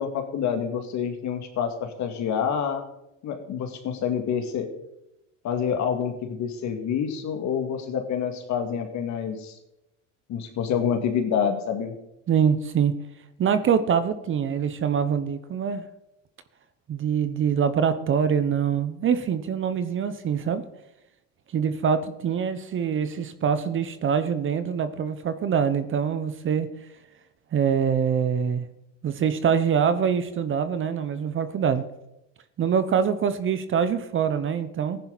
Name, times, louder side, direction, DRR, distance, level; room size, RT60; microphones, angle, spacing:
voice 1, 0.0-2.8 3.2-4.7 5.4-9.6 10.3-11.9, left 7 dB, 50° left, 5 dB, 2.3 m, -27 dB
voice 2, 12.3-12.9 13.4-15.9 16.9-20.6 21.5-26.7 27.5-28.7 29.0-31.8 32.6-35.0, right 7 dB, 35° right, 12 dB, 0.9 m, -24 dB
15.0 x 10.5 x 4.1 m, 0.88 s
supercardioid pair, 110°, 36 cm